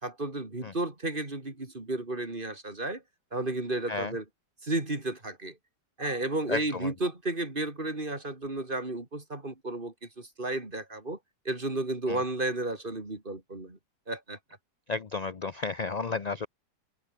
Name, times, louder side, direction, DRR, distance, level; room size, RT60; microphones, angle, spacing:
voice 1, 0.0-3.0 3.3-4.2 4.6-5.6 6.0-11.2 11.5-13.8 14.1-14.4, right 2 dB, 30° right, 3.8 m, -33 dB
voice 2, 6.5-6.9 12.1-12.2 14.9-16.5, left 4 dB, 40° left, 0.6 m, -32 dB
omnidirectional pair, 1.9 m